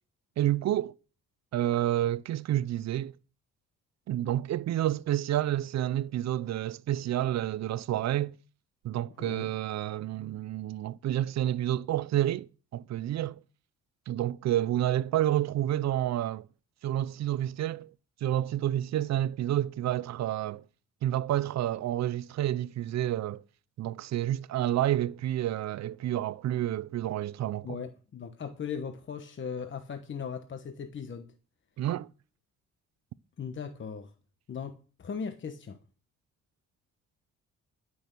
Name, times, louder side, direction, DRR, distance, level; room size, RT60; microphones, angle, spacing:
voice 1, 0.4-0.9 1.5-3.1 4.1-8.3 8.8-13.4 14.1-16.5 16.8-17.9 18.2-20.6 21.0-23.4 23.8-27.7 31.8-32.1, right 12 dB, 65° right, 0.6 m, -29 dB
voice 2, 9.2-9.5 27.6-31.3 33.4-34.1 34.5-35.8, left 6 dB, 40° left, 1.1 m, -38 dB
12.0 x 6.3 x 6.8 m
cardioid pair, 90°, 30 cm